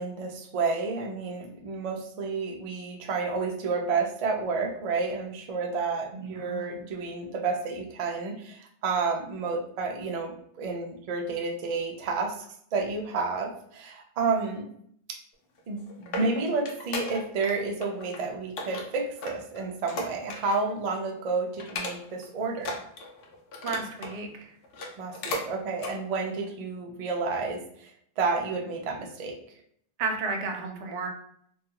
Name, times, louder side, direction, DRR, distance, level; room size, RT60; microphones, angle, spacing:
voice 1, 0.0-12.3 12.7-14.7 15.1-15.2 15.7-22.8 25.0-29.4, right 4 dB, 60° right, 2 dB, 0.4 m, -30 dB
voice 2, 6.1-6.7 23.6-24.3 30.0-31.1, right 4 dB, 90° right, 4 dB, 0.9 m, -32 dB
sound 1, 15.6-17.5 17.8-18.2 18.6-20.7 21.0-21.2 21.6-22.2 22.6-24.2 24.6-25.5 25.8-26.0 26.5-26.6, left 2 dB, 65° left, 0.7 m, -36 dB
2.3 x 2.3 x 2.8 m, 0.66 s
omnidirectional pair, 1.1 m